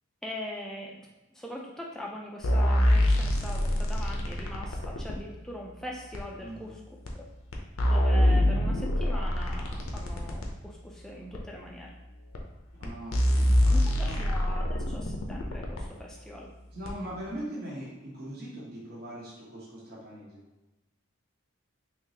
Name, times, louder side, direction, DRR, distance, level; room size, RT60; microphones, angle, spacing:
voice 1, 0.2-0.9 1.3-6.8 7.1-7.2 7.9-11.9 13.7-16.5, equal, ahead, -2 dB, 0.3 m, -41 dB
sound 1, 2.4-5.2 6.1-6.2 7.0-7.1 7.5-10.5 11.3-11.4 12.3-12.4 12.8-12.9 13.1-15.8 16.8-16.9, left 1 dB, 75° left, 0.6 m, -25 dB
voice 2, 6.4-6.7 12.8-14.2 14.5-14.7 16.7-20.4, right 1 dB, 45° right, -6 dB, 1.0 m, -41 dB
3.7 x 3.0 x 2.8 m, 1.1 s
head